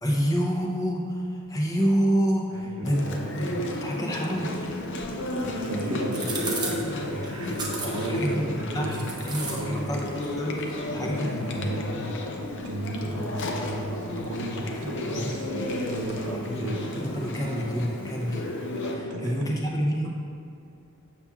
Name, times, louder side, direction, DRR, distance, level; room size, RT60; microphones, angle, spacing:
voice 1, 0.0-3.0 3.3-4.7 8.1-11.9 14.7-15.3 16.4-18.4 18.9-20.1, equal, 15° left, -2 dB, 0.6 m, -28 dB
voice 2, 2.5-3.4 5.3-9.1 9.5-10.0 10.9-12.1 12.6-17.0 17.3-17.4 17.9-18.0 18.7-19.4, right 1 dB, 85° right, 1 dB, 0.8 m, -34 dB
Chewing mastication, 2.8-18.9, left 1 dB, 55° left, 0.6 m, -33 dB
sound 1, 4.6-16.3, right 3 dB, 20° right, 0.7 m, -40 dB
sound 2, 5.2-8.2 15.3-18.3, equal, 70° left, 1.2 m, -37 dB
6.9 x 6.9 x 2.4 m, 2.6 s
head